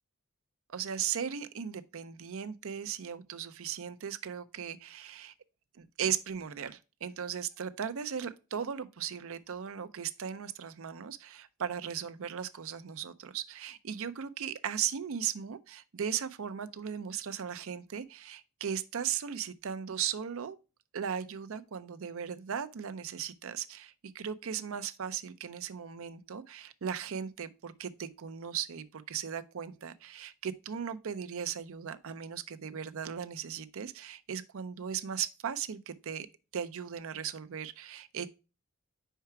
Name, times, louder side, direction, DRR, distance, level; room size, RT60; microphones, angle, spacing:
voice 1, 0.7-5.3 5.7-20.6 20.9-36.3 36.5-38.3, right 8 dB, 65° right, 0.5 m, -37 dB
4.7 x 4.5 x 4.5 m
head